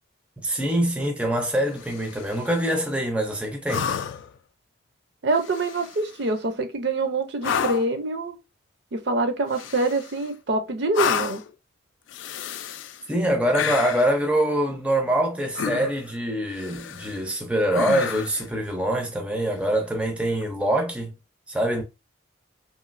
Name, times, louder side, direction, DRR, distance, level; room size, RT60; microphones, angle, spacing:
voice 1, 0.4-3.9 13.1-21.1 21.5-21.8, right 1 dB, 5° right, 0.4 m, -24 dB
sound 1, 1.7-2.5 3.7-4.4 5.4-6.1 7.4-8.0 9.5-10.3 10.9-11.5 12.1-13.0 13.5-14.2 15.5-16.1 16.6-17.2 17.7-18.5 20.3-20.4, left 7 dB, 75° left, 0.3 m, -30 dB
voice 2, 5.2-8.4 8.9-11.4, right 2 dB, 60° right, 0.5 m, -25 dB
3.0 x 2.8 x 2.4 m
head